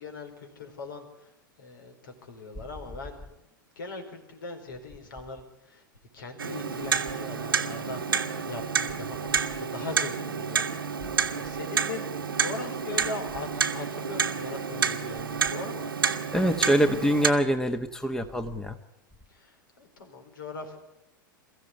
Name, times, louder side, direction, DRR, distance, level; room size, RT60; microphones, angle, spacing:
voice 1, 0.0-1.3 1.6-3.4 3.8-5.9 6.1-15.9 19.3-20.8, left 3 dB, 70° left, 5 dB, 4.5 m, -40 dB
Clock, 6.4-17.3, right 6 dB, 85° right, 1.5 m, -29 dB
voice 2, 16.3-18.8, right 1 dB, 5° left, 9 dB, 1.3 m, -24 dB
23.0 x 15.0 x 9.7 m, 0.85 s
figure-of-eight pair, 95°, 11 cm